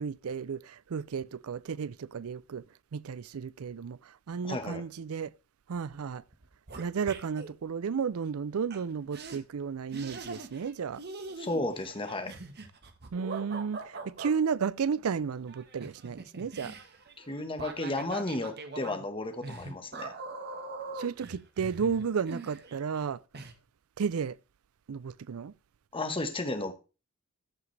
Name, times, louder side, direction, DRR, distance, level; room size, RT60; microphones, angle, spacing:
voice 1, 0.0-2.6 2.9-4.0 4.3-5.3 5.7-6.2 6.8-11.0 13.1-16.7 21.0-23.2 24.0-24.4 24.9-25.5, right 6 dB, 85° right, 0.5 m, -33 dB
voice 2, 4.4-4.8 11.4-12.3 17.2-20.1 25.9-26.7, left 2 dB, 25° left, 1.3 m, -33 dB
sound 1, 5.9-6.0 6.3-7.5 8.7-8.8 9.1-9.4 9.9-10.7 11.0-14.3 15.5-23.0 23.3-23.5, right 3 dB, 50° right, 1.4 m, -42 dB
14.0 x 7.3 x 3.3 m
head